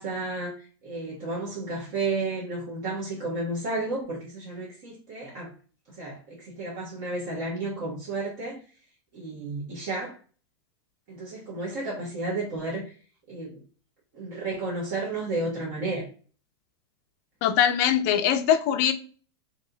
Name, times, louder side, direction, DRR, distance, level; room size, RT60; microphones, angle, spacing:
voice 1, 0.0-5.5 5.9-8.6 9.1-10.2 11.1-12.9 13.3-13.6 14.1-16.1, right 2 dB, 45° right, 1.3 m, -32 dB
voice 2, 17.4-18.9, left 9 dB, 40° left, 0.5 m, -22 dB
3.1 x 2.9 x 3.8 m
supercardioid pair, 165°, 14 cm